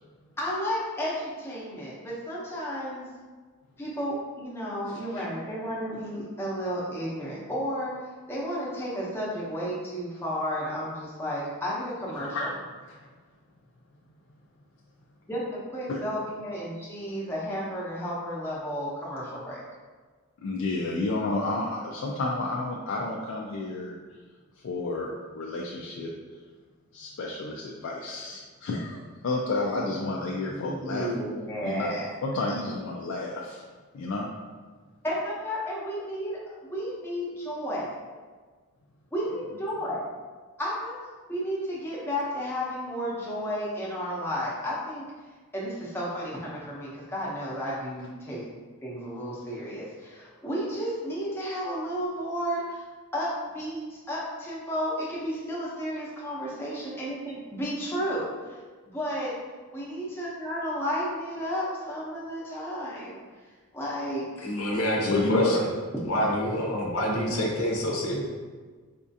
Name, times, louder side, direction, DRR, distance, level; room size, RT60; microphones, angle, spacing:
voice 1, 0.4-3.1 3.8-7.9 8.3-12.5 15.3-15.4 15.7-19.6 29.7-32.1 35.0-37.9 39.1-40.0 40.6-45.0 45.5-48.4 48.8-52.8 53.1-58.6 58.9-59.3 59.7-63.2 63.7-64.5, equal, 10° left, -7 dB, 0.6 m, -32 dB
voice 2, 4.8-5.3 12.2-12.5 15.9-16.0 20.4-23.9 24.6-26.1 26.9-31.1 31.6-31.9 32.2-33.6 33.9-34.3 64.7-65.6 66.1-66.3, left 2 dB, 60° left, -2 dB, 0.3 m, -31 dB
voice 3, 64.4-65.7 66.1-68.3, equal, 80° left, -2 dB, 0.7 m, -27 dB
4.1 x 2.4 x 2.6 m, 1.4 s
head